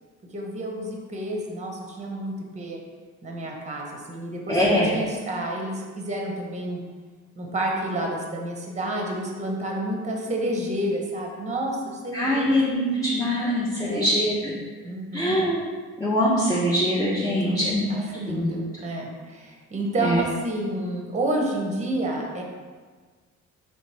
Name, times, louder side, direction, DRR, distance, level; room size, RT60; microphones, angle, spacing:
voice 1, 0.3-2.8 3.2-6.8 7.4-14.1 14.8-15.4 17.2-22.4, right 1 dB, 25° right, 0 dB, 0.8 m, -30 dB
voice 2, 4.5-4.9 12.1-14.5 15.1-15.6 16.0-17.8 18.3-18.5 20.0-20.2, equal, 10° left, -7 dB, 0.8 m, -23 dB
4.0 x 3.3 x 3.3 m, 1.5 s
cardioid pair, 90°, 30 cm